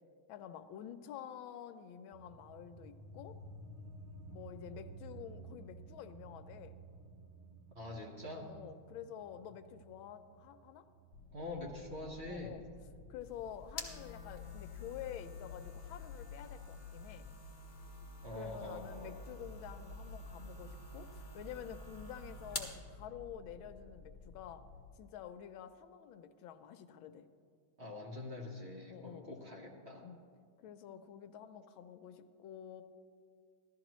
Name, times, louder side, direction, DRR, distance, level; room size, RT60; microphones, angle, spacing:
voice 1, 0.3-3.4 4.3-6.7 8.3-10.9 12.3-12.6 13.1-17.3 18.3-24.6 25.0-27.3 28.9-29.3 30.0-30.2 30.6-32.8, left 9 dB, 80° left, 10 dB, 1.4 m, -49 dB
sound 1, 2.1-13.2, right 3 dB, 60° right, 0.9 m, -54 dB
voice 2, 7.7-8.5 11.3-12.6 18.2-19.1 27.8-30.0, left 2 dB, 40° right, -1 dB, 1.2 m, -45 dB
sound 2, 11.1-24.8, left 5 dB, 65° left, 1.4 m, -54 dB
sound 3, 13.2-22.8, left 2 dB, 35° left, 0.8 m, -49 dB
16.0 x 12.5 x 3.0 m, 2.2 s
omnidirectional pair, 2.2 m